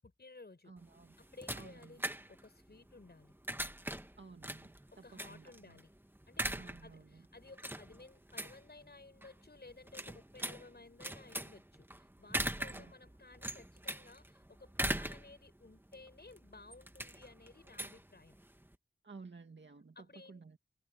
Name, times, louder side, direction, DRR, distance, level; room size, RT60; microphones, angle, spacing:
voice 1, 0.0-0.7 1.2-2.0 2.3-3.3 4.9-5.9 6.3-18.4 20.0-20.4, left 3 dB, 65° left, 7.2 m, -56 dB
voice 2, 0.7-1.2 1.5-2.1 4.2-5.8 6.5-7.2 12.7-12.9 19.0-20.6, right 4 dB, 85° right, 2.1 m, -54 dB
sound 1, 0.8-18.7, right 1 dB, 10° right, 1.4 m, -42 dB
wide cardioid pair, 60°, 18 cm